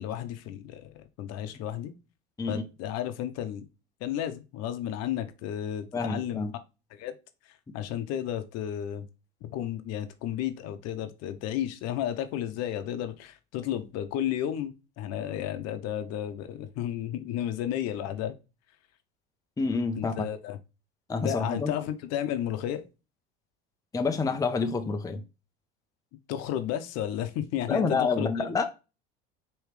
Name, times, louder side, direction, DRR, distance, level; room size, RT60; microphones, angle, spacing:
voice 1, 0.0-1.9 2.5-3.7 4.0-6.5 6.9-7.1 7.7-9.1 9.4-18.4 20.0-20.6 21.2-22.8 26.3-28.3, left 11 dB, 60° left, 0.8 m, -33 dB
voice 2, 5.9-6.5 19.6-20.3 21.1-21.7 23.9-25.2 27.7-28.6, left 4 dB, 10° left, 0.6 m, -28 dB
4.7 x 3.1 x 3.2 m
supercardioid pair, 95°, 29 cm